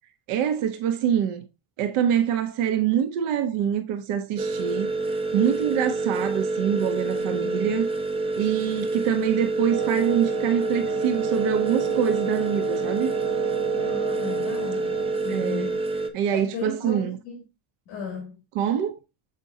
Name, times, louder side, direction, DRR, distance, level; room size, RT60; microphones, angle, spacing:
voice 1, 0.3-1.4 1.8-4.9 5.3-7.9 8.4-13.1 15.3-15.7 16.1-17.2 18.6-19.0, right 9 dB, 85° right, 0.9 m, -25 dB
sound 1, 4.4-16.1, right 3 dB, 10° right, 0.6 m, -28 dB
voice 2, 7.2-7.8 13.7-15.8 16.3-17.4 17.9-18.4, left 6 dB, 50° left, 2.3 m, -36 dB
Wind instrument woodwind instrument, 9.7-15.4, right 8 dB, 60° right, 1.2 m, -31 dB
7.4 x 5.2 x 2.7 m
cardioid pair, 155°, 49 cm